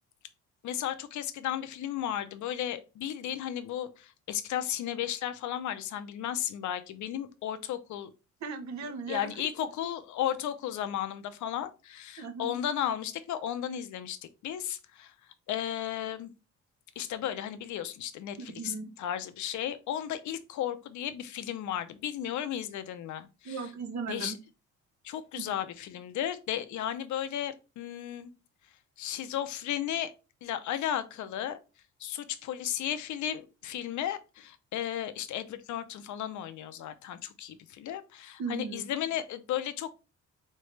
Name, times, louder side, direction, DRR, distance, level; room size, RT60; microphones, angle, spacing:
voice 1, 0.6-8.1 9.1-15.1 15.5-16.3 17.0-23.6 24.1-24.3 25.0-28.3 29.0-30.1 30.4-31.6 32.0-39.9, left 10 dB, 75° left, 0.6 m, -34 dB
voice 2, 8.4-9.5 12.2-12.6 18.4-18.9 23.4-24.4 25.4-25.5 38.4-38.8, right 5 dB, 65° right, 1.0 m, -37 dB
3.7 x 3.2 x 3.2 m
cardioid pair, 90°, 30 cm